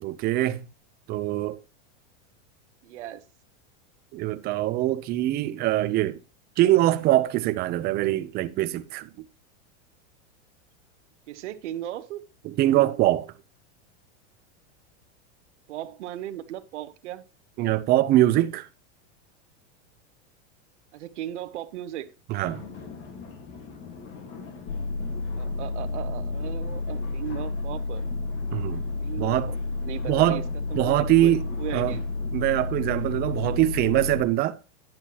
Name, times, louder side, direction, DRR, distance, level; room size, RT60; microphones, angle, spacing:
voice 1, 0.0-0.7 1.1-1.6 4.1-6.2 6.6-9.1 12.4-13.3 17.6-18.7 22.3-22.6 28.5-28.8 29.2-29.5 30.1-30.4 30.7-31.4 31.7-32.0 32.3-34.6, right 15 dB, 30° right, 0.5 m, -23 dB
voice 2, 2.8-3.2 11.3-12.3 15.7-17.2 20.9-22.1 25.4-28.0 29.0-30.4 30.7-32.0, right 13 dB, 80° right, 0.9 m, -37 dB
sound 1, 22.4-34.3, left 5 dB, 35° left, 1.8 m, -43 dB
sound 2, 24.7-34.2, left 3 dB, 75° left, 0.8 m, -31 dB
10.5 x 7.2 x 3.0 m
supercardioid pair, 145°, 35 cm